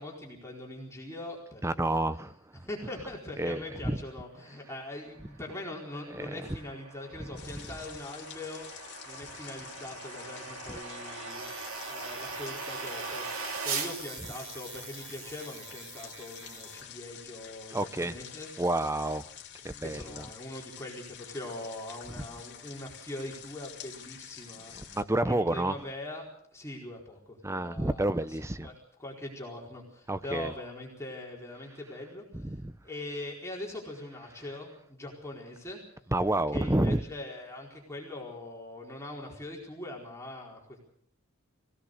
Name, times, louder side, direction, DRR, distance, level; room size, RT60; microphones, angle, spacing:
voice 1, 0.0-2.0 2.6-8.7 9.1-11.5 11.9-13.2 13.6-18.5 19.8-25.0 25.2-26.3 26.5-28.7 29.0-32.5 32.8-35.8 36.5-40.8, left 1 dB, 15° left, -2 dB, 4.5 m, -42 dB
voice 2, 1.6-2.3 3.4-4.0 6.2-6.3 17.7-18.1 18.6-19.2 19.6-20.3 24.9-25.8 27.4-28.7 30.1-30.5 32.3-32.7 36.1-37.0, right 1 dB, 15° right, 13 dB, 0.7 m, -29 dB
sound 1, 5.3-13.9, right 4 dB, 70° right, 2.6 m, -40 dB
sound 2, 7.4-25.0, left 9 dB, 55° left, 2.6 m, -48 dB
sound 3, 10.8-16.8, right 5 dB, 85° right, 4.3 m, -46 dB
24.5 x 17.0 x 6.6 m, 0.65 s
head